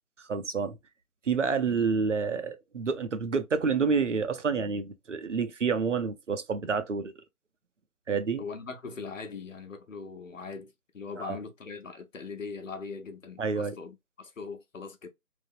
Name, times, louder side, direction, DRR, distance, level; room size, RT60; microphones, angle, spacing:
voice 1, 0.3-0.8 1.3-7.1 8.1-8.4 11.2-11.4 13.4-13.7, right 5 dB, 55° right, 0.6 m, -28 dB
voice 2, 8.4-15.1, left 5 dB, 60° left, 0.8 m, -41 dB
3.3 x 2.0 x 2.4 m
figure-of-eight pair, 165°, 44 cm